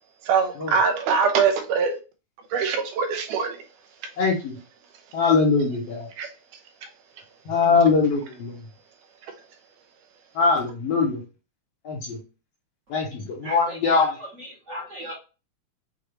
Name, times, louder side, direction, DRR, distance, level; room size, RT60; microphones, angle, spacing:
voice 1, 0.2-2.0 2.5-3.7 6.2-6.3 6.8-6.9 9.2-9.3, right 6 dB, 85° right, 2.4 m, -23 dB
voice 2, 4.2-4.6 5.1-6.1 7.5-8.6 10.3-11.2 11.8-12.2 12.9-14.1, left 4 dB, 70° left, 1.6 m, -22 dB
voice 3, 13.4-15.1, right 1 dB, 40° right, 1.0 m, -37 dB
6.4 x 2.8 x 3.0 m
omnidirectional pair, 3.6 m